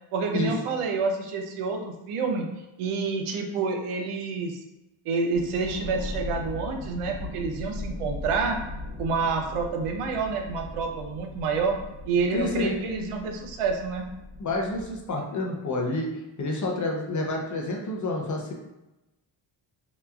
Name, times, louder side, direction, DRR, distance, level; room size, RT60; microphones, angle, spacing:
voice 1, 0.1-2.5 2.8-4.6 5.1-8.6 9.0-11.7 12.1-14.1, right 4 dB, 90° right, 3 dB, 0.6 m, -28 dB
sound 1, 5.3-15.1, left 2 dB, 40° right, 1.0 m, -39 dB
voice 2, 12.3-12.7 14.4-16.1 16.4-18.5, left 2 dB, 40° left, 0 dB, 0.5 m, -28 dB
2.9 x 2.3 x 2.2 m, 0.96 s
wide cardioid pair, 120°, 49 cm